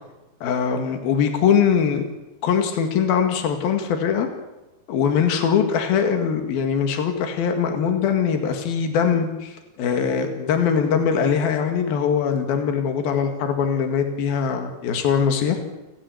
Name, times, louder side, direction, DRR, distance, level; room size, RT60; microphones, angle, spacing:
voice 1, 0.4-2.1 2.4-4.3 4.9-15.8, left 7 dB, 70° left, 5 dB, 3.9 m, -22 dB
29.5 x 15.0 x 8.5 m, 1.0 s
omnidirectional pair, 4.4 m